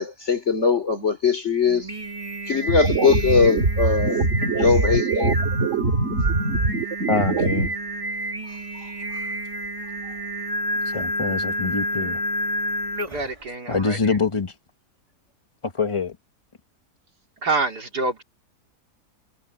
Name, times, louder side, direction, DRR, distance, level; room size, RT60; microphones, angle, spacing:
voice 1, 0.0-1.9 2.5-4.3 4.6-5.3 8.7-8.9, left 5 dB, 45° left, 3.3 m, -21 dB
Singing, 1.7-13.4, right 1 dB, 20° right, 2.3 m, -30 dB
sound 1, 2.7-7.7, right 3 dB, 50° right, 2.3 m, -22 dB
voice 2, 7.1-7.7 10.8-12.2 13.7-14.6 15.6-16.2, left 4 dB, 25° left, 0.8 m, -25 dB
voice 3, 13.1-14.2 17.4-18.2, right 3 dB, 85° right, 4.1 m, -27 dB
omnidirectional pair, 1.7 m